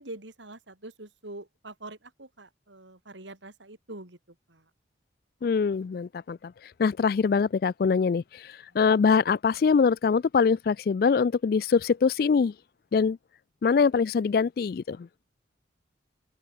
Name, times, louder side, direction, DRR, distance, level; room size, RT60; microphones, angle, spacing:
voice 1, 0.0-4.2 4.5-4.7 8.7-8.8, right 2 dB, 85° right, 3.4 m, -44 dB
voice 2, 5.4-6.5 6.8-12.5 12.9-13.2 13.6-15.1, left 5 dB, 50° left, 0.3 m, -23 dB
head